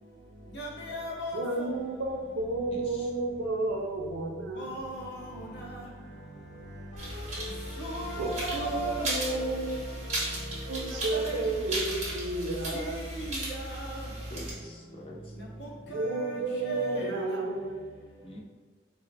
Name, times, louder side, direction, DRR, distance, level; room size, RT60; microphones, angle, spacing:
voice 1, 0.6-1.7 4.6-5.1 7.8-9.1 11.1-11.4 12.7-12.9 13.1-13.4 13.6-14.0 15.9-16.4 16.7-17.1, right 2 dB, 65° left, 0.8 m, -36 dB
voice 2, 1.3-4.8 8.2-9.8 10.7-13.0 15.9-17.8, right 2 dB, 85° right, 0.5 m, -32 dB
voice 3, 2.7-3.1 11.5-11.6 14.3-15.3 18.2-18.4, equal, 30° left, 0.5 m, -45 dB
Bowed string instrument, 4.6-10.6, right 1 dB, ahead, 1.1 m, -56 dB
sound 1, 6.9-11.8, left 4 dB, 85° left, 0.4 m, -46 dB
sound 2, 7.0-14.5, right 1 dB, 40° right, 0.9 m, -36 dB
4.0 x 2.0 x 2.6 m
head